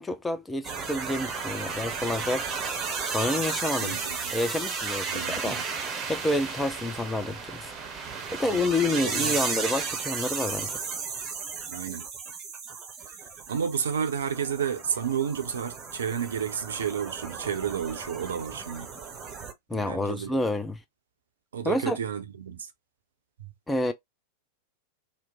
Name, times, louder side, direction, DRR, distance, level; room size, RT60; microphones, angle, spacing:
voice 1, 0.0-2.5 3.1-4.0 4.3-5.6 6.1-7.7 8.3-10.8 19.7-20.8 21.6-22.0 23.7-23.9, left 2 dB, 10° left, 0.5 m, -28 dB
sound 1, 0.6-19.5, right 5 dB, 30° right, 0.8 m, -34 dB
voice 2, 3.8-4.3 5.1-5.6 8.4-8.6 8.9-9.4 11.7-12.1 13.0-13.2 13.5-18.9 19.7-20.3 21.5-22.7 23.4-23.5, right 7 dB, 65° right, 0.6 m, -31 dB
2.9 x 2.1 x 3.4 m
figure-of-eight pair, 90°, 0 cm